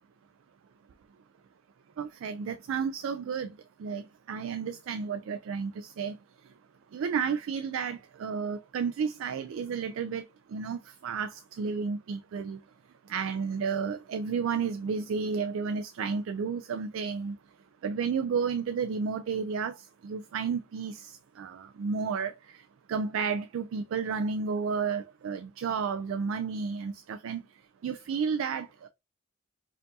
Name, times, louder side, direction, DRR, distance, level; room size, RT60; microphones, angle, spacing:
voice 1, 2.0-3.5 3.8-6.2 6.9-12.6 13.1-17.4 17.8-22.6 22.9-27.4 27.8-28.9, right 5 dB, 65° right, 0.3 m, -32 dB
4.4 x 2.5 x 2.7 m
head